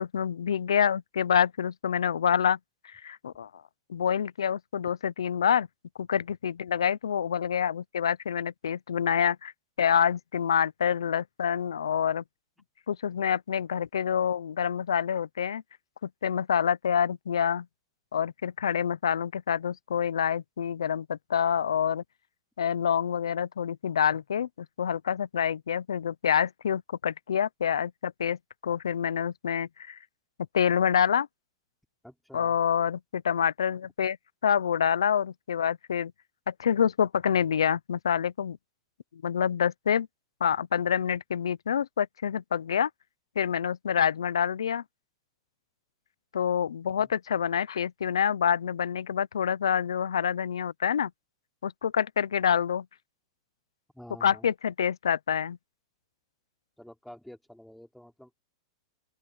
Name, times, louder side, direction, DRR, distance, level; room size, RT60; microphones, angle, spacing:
voice 1, 0.0-2.6 2.9-3.5 3.9-5.7 6.0-9.5 9.8-12.2 12.9-15.6 16.0-17.7 18.1-22.0 22.6-30.0 30.5-31.3 32.3-34.2 34.4-36.1 36.5-38.6 39.1-40.1 40.4-42.9 43.4-44.8 46.3-51.1 51.6-52.9 54.2-55.6, left 8 dB, 90° left, 0.6 m, -27 dB
voice 2, 32.0-32.6 47.0-47.1 53.9-54.5 56.8-58.3, equal, ahead, 4.0 m, -49 dB
open air
hypercardioid pair, 120°, 3 cm